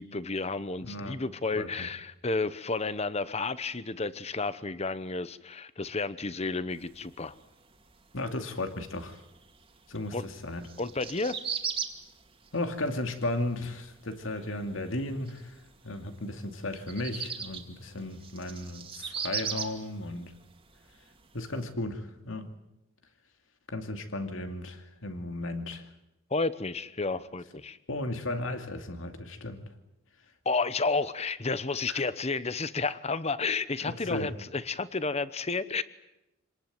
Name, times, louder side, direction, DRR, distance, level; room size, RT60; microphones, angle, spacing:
voice 1, 0.0-7.3 10.1-10.2 10.8-11.4 26.3-27.8 30.4-35.8, left 3 dB, 30° left, 15 dB, 0.9 m, -31 dB
voice 2, 0.8-1.2 1.5-1.9 8.1-9.2 9.9-10.7 12.5-15.6 15.8-20.3 21.3-22.5 23.7-25.9 27.1-27.2 27.9-29.6 31.9-32.0 33.8-34.3, left 2 dB, 75° left, 7 dB, 2.5 m, -35 dB
sound 1, 6.7-21.7, right 7 dB, 25° right, 2.4 m, -40 dB
26.5 x 19.0 x 9.3 m, 0.93 s
head